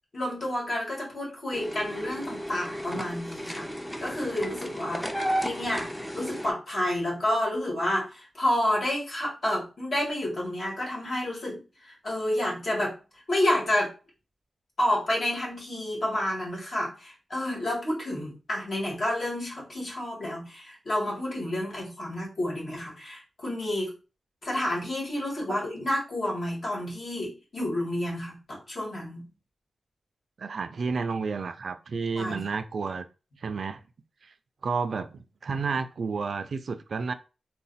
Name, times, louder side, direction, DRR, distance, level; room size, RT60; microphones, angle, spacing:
voice 1, 0.1-3.7 4.0-5.1 5.4-12.9 13.3-13.9 14.8-23.9 24.4-29.3 32.2-32.4, left 1 dB, 55° left, 1.9 m, -30 dB
sound 1, 1.5-6.5, equal, 10° left, 0.5 m, -33 dB
voice 2, 30.4-33.1 33.4-33.8 34.2-34.3 34.6-37.1, right 4 dB, 65° right, 0.3 m, -31 dB
3.9 x 2.1 x 4.1 m
wide cardioid pair, 110°, 0 cm